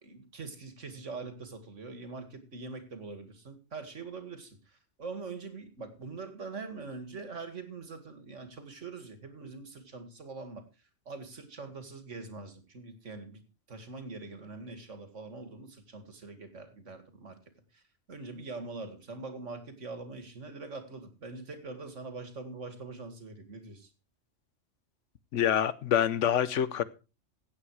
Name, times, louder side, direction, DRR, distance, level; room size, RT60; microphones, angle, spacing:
voice 1, 0.0-10.6 11.1-17.4 17.7-17.8 18.1-23.9, right 3 dB, 75° right, 2.5 m, -43 dB
voice 2, 25.3-26.8, left 9 dB, 75° left, 1.2 m, -26 dB
15.5 x 8.8 x 4.8 m
omnidirectional pair, 1.3 m